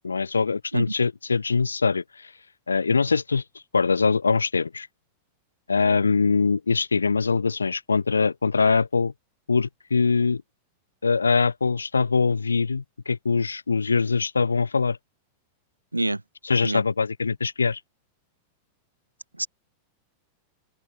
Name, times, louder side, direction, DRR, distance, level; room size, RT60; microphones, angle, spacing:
voice 1, 0.0-2.3 2.7-3.4 3.7-4.9 5.7-9.1 9.5-10.4 11.0-15.0 16.4-17.8, left 4 dB, 75° left, 0.8 m, -23 dB
voice 2, 0.7-0.9 15.9-16.2 16.6-16.8 19.4-19.5, right 2 dB, 85° right, 0.3 m, -25 dB
open air
figure-of-eight pair, 90°, 0 cm